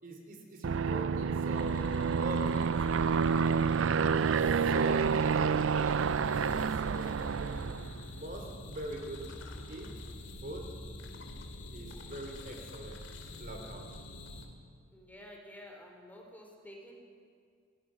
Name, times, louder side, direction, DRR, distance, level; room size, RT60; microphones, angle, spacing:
voice 1, 0.0-2.8 4.4-6.0 6.7-9.3 9.7-9.9 10.4-10.7 11.7-13.0 13.4-13.9, right 1 dB, 45° right, 3 dB, 3.0 m, -43 dB
Aircraft, 0.6-8.0, right 6 dB, 80° right, 0.5 m, -29 dB
sound 1, 1.5-14.4, left 1 dB, 65° left, 2.7 m, -46 dB
voice 2, 14.9-17.0, equal, 10° left, 1 dB, 3.9 m, -50 dB
28.0 x 19.0 x 6.2 m, 2.2 s
head